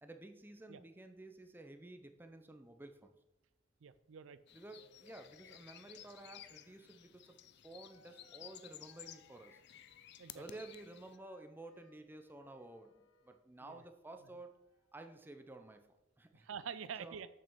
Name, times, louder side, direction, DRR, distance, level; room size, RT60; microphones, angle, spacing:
voice 1, 0.0-3.1 4.5-7.4 7.6-9.6 10.3-14.5 14.9-16.5 17.0-17.2, right 2 dB, 10° right, 6 dB, 0.6 m, -53 dB
voice 2, 3.8-4.4 10.2-10.4 13.6-13.8 16.3-17.3, right 7 dB, 80° right, 14 dB, 0.4 m, -46 dB
sound 1, 4.5-11.2, left 11 dB, 60° left, 0.5 m, -56 dB
sound 2, 7.2-7.3 7.9-13.5 14.2-15.1, left 3 dB, 85° left, 0.7 m, -70 dB
6.6 x 6.2 x 6.0 m, 0.96 s
head